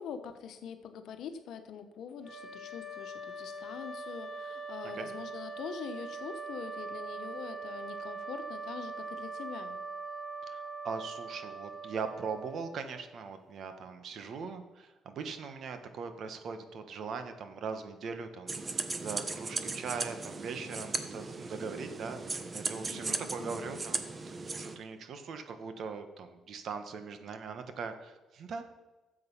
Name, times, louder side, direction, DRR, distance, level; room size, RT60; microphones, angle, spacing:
voice 1, 0.0-9.8 22.9-23.8, left 7 dB, 75° left, 8 dB, 1.1 m, -44 dB
sound 1, 2.2-13.1, right 3 dB, 15° right, 3.7 m, -42 dB
voice 2, 10.5-28.6, right 5 dB, 65° right, 8 dB, 1.4 m, -40 dB
sound 2, 18.5-24.8, right 3 dB, 30° right, 1.1 m, -37 dB
13.0 x 7.7 x 5.7 m, 1.2 s
cardioid pair, 90°, 0 cm